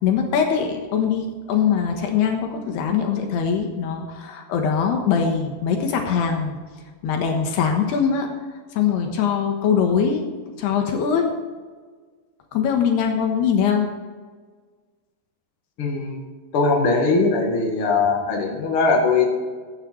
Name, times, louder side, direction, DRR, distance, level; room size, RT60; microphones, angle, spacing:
voice 1, 0.0-6.6 7.0-8.3 8.7-10.2 10.6-11.3 12.5-13.9, left 7 dB, 75° left, 3 dB, 3.2 m, -22 dB
voice 2, 15.8-16.2 16.5-19.2, left 3 dB, 40° left, 0 dB, 2.3 m, -20 dB
16.5 x 9.1 x 4.6 m, 1.5 s
omnidirectional pair, 4.9 m